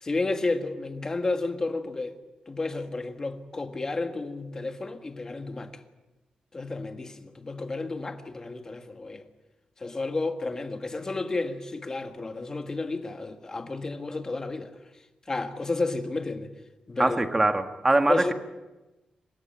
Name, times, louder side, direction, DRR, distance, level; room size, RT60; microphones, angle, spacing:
voice 1, 0.0-2.2 2.5-5.8 6.5-9.2 9.8-14.7 15.3-16.5 16.9-17.2 18.1-18.3, left 3 dB, 25° left, 1.8 m, -31 dB
voice 2, 17.0-18.3, right 2 dB, 15° right, 1.6 m, -23 dB
26.0 x 16.0 x 9.1 m
wide cardioid pair, 145°, 2 cm